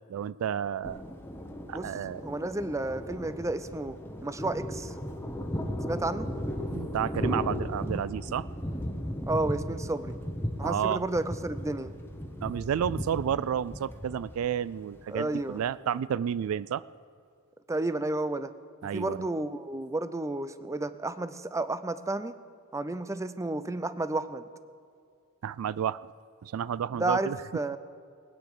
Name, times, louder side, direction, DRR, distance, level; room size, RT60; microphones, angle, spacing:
voice 1, 0.1-1.0 1.7-2.3 6.7-8.5 10.6-11.0 12.4-16.8 18.8-19.3 25.4-26.1 26.4-27.4, right 9 dB, 75° right, 19 dB, 0.3 m, -31 dB
Thunder, 0.8-15.6, equal, 10° left, 1.1 m, -36 dB
voice 2, 2.2-4.0 4.2-4.9 5.9-6.3 9.3-10.2 10.6-12.0 15.1-15.6 17.7-18.5 18.9-22.3 22.7-24.4 27.0-27.8, right 2 dB, 15° right, 13 dB, 0.5 m, -31 dB
21.0 x 9.3 x 6.7 m, 2.3 s
head